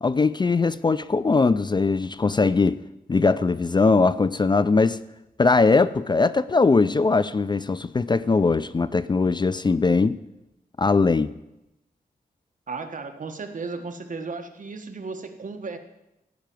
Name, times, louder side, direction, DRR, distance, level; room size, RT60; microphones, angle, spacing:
voice 1, 0.0-2.8 3.1-5.0 5.4-10.2 10.8-11.3, left 4 dB, 30° left, 0.4 m, -20 dB
voice 2, 12.7-15.8, right 4 dB, 55° right, 1.4 m, -35 dB
15.5 x 5.7 x 9.2 m
wide cardioid pair, 100°, 16 cm